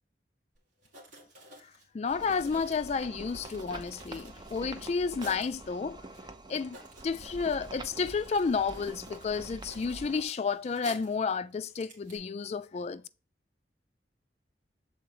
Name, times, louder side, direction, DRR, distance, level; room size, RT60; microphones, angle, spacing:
Writing, 0.5-0.6 0.8-5.6 6.1-6.2 6.5-11.2 11.6-12.2, right 1 dB, 45° right, 2.2 m, -52 dB
voice 1, 1.9-6.0 6.5-6.8 7.0-13.0, left 5 dB, 35° left, 0.3 m, -31 dB
sound 1, 2.1-10.2, right 2 dB, 25° right, 0.6 m, -46 dB
7.0 x 3.9 x 4.6 m
head